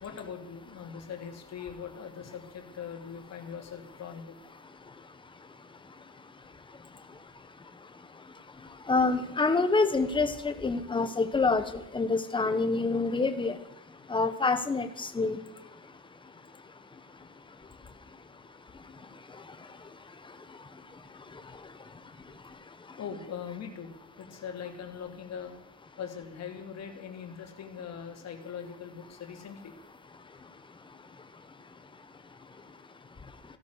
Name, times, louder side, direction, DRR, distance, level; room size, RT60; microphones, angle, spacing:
voice 1, 0.0-4.4 23.0-25.5 26.0-29.7, left 7 dB, 60° left, 4 dB, 2.6 m, -41 dB
voice 2, 8.9-11.6 11.9-13.6 14.1-15.4, left 3 dB, 15° left, 9 dB, 1.1 m, -26 dB
16.0 x 13.0 x 6.4 m, 0.83 s
cardioid pair, 170°, 29 cm